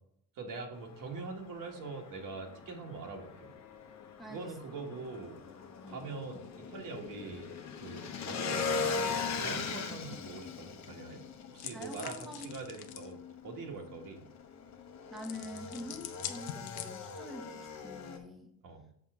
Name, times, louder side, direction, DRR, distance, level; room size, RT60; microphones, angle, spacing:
voice 1, 0.3-3.5 4.3-5.4 5.9-11.2 11.5-14.2 18.6-18.8, right 4 dB, 60° right, 2 dB, 1.6 m, -43 dB
Motorcycle / Engine, 0.7-18.2, left 5 dB, 45° left, 1.0 m, -40 dB
voice 2, 4.2-4.6 5.8-6.1 11.7-12.6 15.1-18.5, left 1 dB, ahead, 1 dB, 1.1 m, -45 dB
sound 1, 11.6-13.1 15.2-17.3, left 11 dB, 80° left, 0.8 m, -44 dB
7.2 x 5.5 x 3.7 m, 0.72 s
cardioid pair, 115°, 37 cm